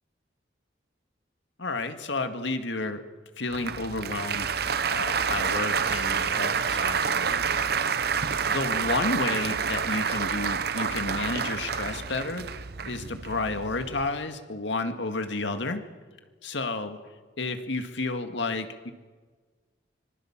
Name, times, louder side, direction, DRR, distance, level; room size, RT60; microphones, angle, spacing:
voice 1, 1.6-3.0 3.4-4.5 4.9-7.5 8.4-12.5 12.9-15.8 16.4-17.0 17.4-18.9, left 3 dB, 75° left, 7 dB, 2.0 m, -31 dB
Applause, 3.5-14.1, right 6 dB, 55° right, 1.0 m, -28 dB
25.5 x 21.0 x 7.4 m, 1.4 s
head